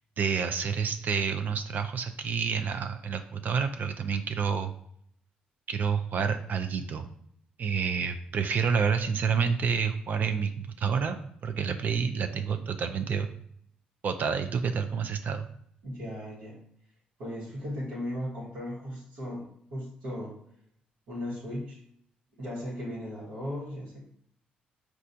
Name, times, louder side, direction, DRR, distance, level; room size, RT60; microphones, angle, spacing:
voice 1, 0.2-4.7 5.7-7.1 7.6-11.2 11.4-13.3 14.0-15.5, right 6 dB, 55° right, 8 dB, 0.3 m, -29 dB
voice 2, 15.8-16.6 17.2-20.4 21.1-21.8 22.3-24.0, left 1 dB, 80° right, -7 dB, 1.1 m, -37 dB
4.2 x 2.3 x 2.6 m, 0.68 s
supercardioid pair, 60°, 4 cm